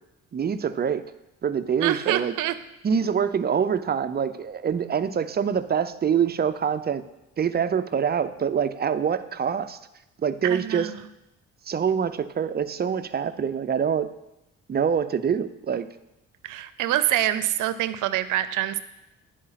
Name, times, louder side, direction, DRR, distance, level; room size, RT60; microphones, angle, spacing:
voice 1, 0.3-1.0 1.4-2.3 2.8-7.0 7.4-9.8 10.2-10.9 11.7-14.1 14.7-15.9, right 7 dB, 35° right, 11 dB, 0.5 m, -25 dB
voice 2, 1.8-2.6 10.4-11.1 16.4-18.8, right 13 dB, 90° right, 14 dB, 0.6 m, -26 dB
9.9 x 5.0 x 5.7 m, 0.91 s
cardioid pair, 90°, 30 cm